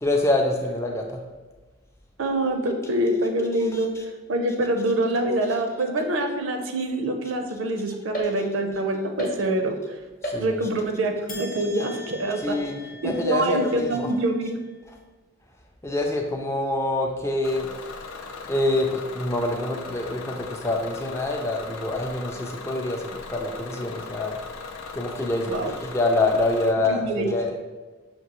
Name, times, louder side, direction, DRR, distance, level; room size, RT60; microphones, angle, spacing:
voice 1, 0.0-1.0 3.7-3.8 10.3-10.6 12.4-12.8 13.0-14.1 15.8-17.7 18.5-23.0 23.3-24.4 24.9-27.6, left 2 dB, 15° left, 1 dB, 0.3 m, -25 dB
voice 2, 2.2-3.9 4.3-9.7 10.4-12.6 13.0-14.6 25.5-25.7 26.9-27.3, right 1 dB, 70° right, 5 dB, 0.5 m, -25 dB
sound 1, 8.1-8.8 9.2-9.8 10.2-10.9 11.3-14.7, equal, 40° left, 0.8 m, -37 dB
Bus / Engine, 17.4-26.7, left 4 dB, 85° left, 0.5 m, -38 dB
5.9 x 2.6 x 2.9 m, 1.3 s
head